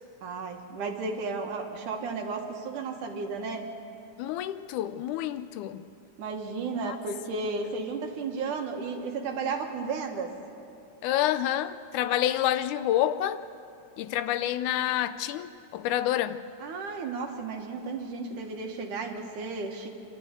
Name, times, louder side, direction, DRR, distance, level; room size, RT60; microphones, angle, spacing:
voice 1, 0.2-3.7 6.2-10.3 16.6-19.9, right 4 dB, 80° right, 3 dB, 3.1 m, -33 dB
voice 2, 4.2-5.9 6.8-7.0 11.0-13.4 14.0-16.4, left 12 dB, 80° left, 13 dB, 2.1 m, -28 dB
26.0 x 13.5 x 8.3 m, 2.7 s
omnidirectional pair, 3.6 m